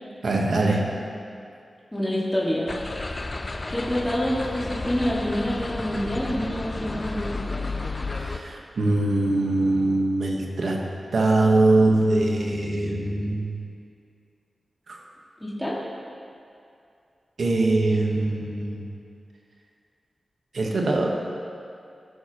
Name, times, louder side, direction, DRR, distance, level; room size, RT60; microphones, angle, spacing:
voice 1, 0.2-1.0 8.1-13.5 14.9-15.0 17.4-18.9 20.5-21.1, right 2 dB, 75° right, 0 dB, 1.2 m, -22 dB
voice 2, 1.9-2.7 3.7-7.7 15.4-15.7, equal, 10° left, -6 dB, 1.9 m, -27 dB
sound 1, 2.7-8.4, left 3 dB, 45° left, 0.6 m, -32 dB
15.5 x 6.3 x 2.9 m, 2.5 s
cardioid pair, 45°, 0 cm